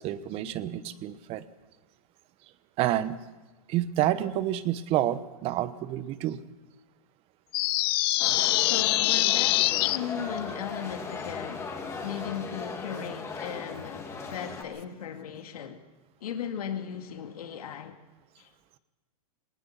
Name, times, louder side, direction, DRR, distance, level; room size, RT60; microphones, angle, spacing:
voice 1, 0.0-1.4 2.8-3.2 3.7-6.4, right 13 dB, 30° right, 1.1 m, -29 dB
sound 1, 7.5-10.0, left 18 dB, 40° left, 0.7 m, -24 dB
sound 2, 8.2-14.6, left 4 dB, 15° left, 2.8 m, -37 dB
voice 2, 8.6-11.7 12.0-15.8 16.2-18.0 18.4-18.5, left 8 dB, 80° left, 2.0 m, -37 dB
19.5 x 19.5 x 7.2 m
hypercardioid pair, 140°, 19 cm